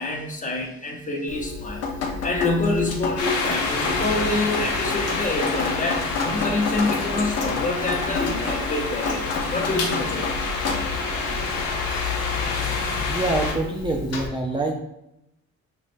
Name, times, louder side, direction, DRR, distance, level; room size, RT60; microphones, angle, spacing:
voice 1, 0.0-1.8 2.2-9.2 9.5-10.3, left 2 dB, 25° left, 0 dB, 0.9 m, -26 dB
Drip, 1.3-14.3, left 4 dB, 55° left, 0.8 m, -30 dB
sound 1, 3.2-13.5, left 3 dB, 85° left, 1.0 m, -28 dB
voice 2, 13.1-14.8, right 2 dB, 15° right, 0 dB, 0.5 m, -26 dB
5.2 x 3.4 x 2.5 m, 0.83 s
cardioid pair, 90°, 30 cm